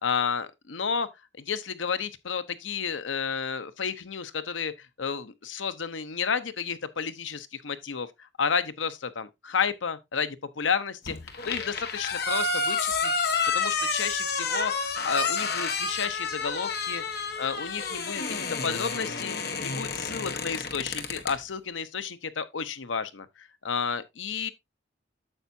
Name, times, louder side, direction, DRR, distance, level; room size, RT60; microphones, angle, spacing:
voice 1, 0.0-1.1 1.4-4.7 5.0-11.2 11.4-13.1 13.5-17.0 17.4-24.5, left 6 dB, 90° left, 0.8 m, -31 dB
sound 1, 11.1-21.4, left 4 dB, 55° left, 1.3 m, -30 dB
9.0 x 6.9 x 2.7 m
head